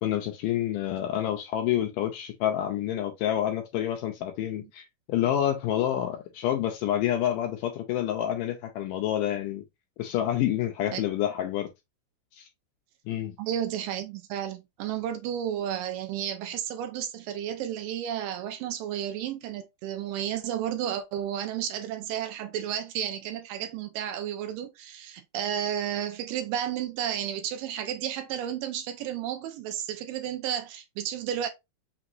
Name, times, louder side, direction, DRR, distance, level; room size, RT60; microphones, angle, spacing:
voice 1, 0.0-9.6 10.0-11.7 12.4-12.5 13.1-13.4, left 11 dB, 80° left, 2.0 m, -28 dB
voice 2, 13.4-31.5, right 10 dB, 80° right, 2.1 m, -32 dB
5.9 x 2.9 x 2.5 m
omnidirectional pair, 4.2 m